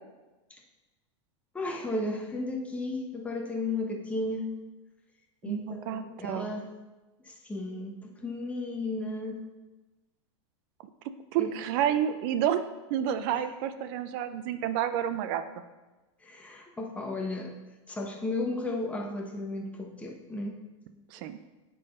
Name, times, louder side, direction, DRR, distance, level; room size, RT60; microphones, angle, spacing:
voice 1, 1.5-4.5 5.4-6.7 7.2-9.4 11.4-11.5 13.3-13.4 16.2-17.5 17.9-20.6, left 2 dB, 10° left, 1 dB, 0.9 m, -34 dB
voice 2, 5.4-6.5 11.3-12.7 12.9-15.4 21.1-21.4, right 10 dB, 50° right, 11 dB, 0.5 m, -29 dB
8.3 x 3.9 x 5.1 m, 1.1 s
supercardioid pair, 140°, 16 cm